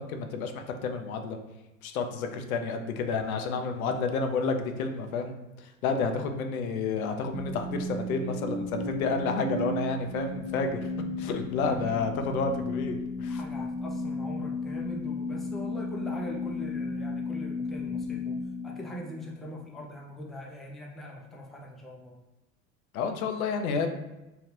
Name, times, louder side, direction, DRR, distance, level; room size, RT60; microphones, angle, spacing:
voice 1, 0.0-1.4 1.8-5.3 5.6-10.9 11.2-13.4 22.9-23.9, left 4 dB, 85° left, 5 dB, 0.6 m, -30 dB
voice 2, 6.0-6.4 11.6-11.9 13.3-22.2, left 1 dB, ahead, -2 dB, 0.4 m, -42 dB
sound 1, 7.3-19.5, left 2 dB, 35° right, 0.9 m, -34 dB
2.9 x 2.4 x 3.1 m, 1.0 s
hypercardioid pair, 85°, 41 cm